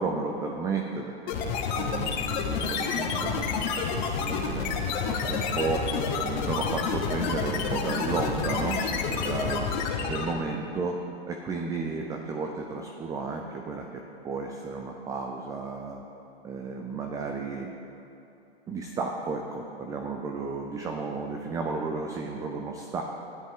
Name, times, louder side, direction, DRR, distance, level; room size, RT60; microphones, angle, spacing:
voice 1, 0.0-1.3 1.7-4.8 5.1-5.9 6.2-9.7 10.1-11.0 11.3-16.0 16.4-17.7 18.7-23.0, right 4 dB, 10° right, 2 dB, 0.4 m, -33 dB
sound 1, 1.3-10.4, left 5 dB, 45° left, 1.1 m, -29 dB
12.0 x 10.0 x 3.7 m, 2.9 s
hypercardioid pair, 130°, 31 cm